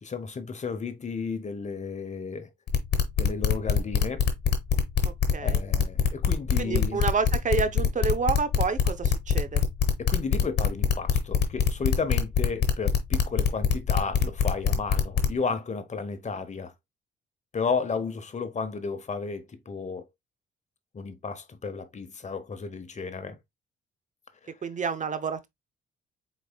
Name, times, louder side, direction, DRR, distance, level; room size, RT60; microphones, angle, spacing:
voice 1, 0.0-2.5 3.2-4.2 5.4-7.0 10.0-16.7 17.5-20.0 20.9-23.4 24.4-24.5, left 5 dB, 40° left, 1.0 m, -33 dB
sound 1, 2.7-15.4, left 7 dB, 60° left, 1.2 m, -23 dB
voice 2, 5.0-5.6 6.6-9.6 24.6-25.5, right 5 dB, 40° right, 0.8 m, -29 dB
4.7 x 4.1 x 2.3 m
cardioid pair, 75°, 19 cm